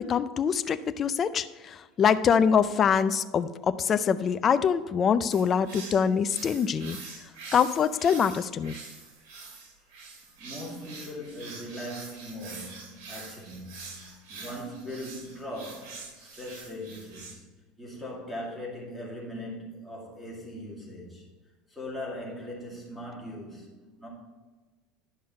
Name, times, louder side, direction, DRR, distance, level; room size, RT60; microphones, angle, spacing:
voice 1, 0.0-7.0 7.5-8.7, left 7 dB, 25° left, 12 dB, 0.4 m, -24 dB
sound 1, 5.3-17.3, right 4 dB, 80° right, 2.4 m, -45 dB
voice 2, 10.4-17.5 17.8-21.3 21.7-24.1, left 1 dB, ahead, -4 dB, 2.3 m, -40 dB
11.0 x 5.6 x 4.3 m, 1.3 s
cardioid pair, 165°, 0 cm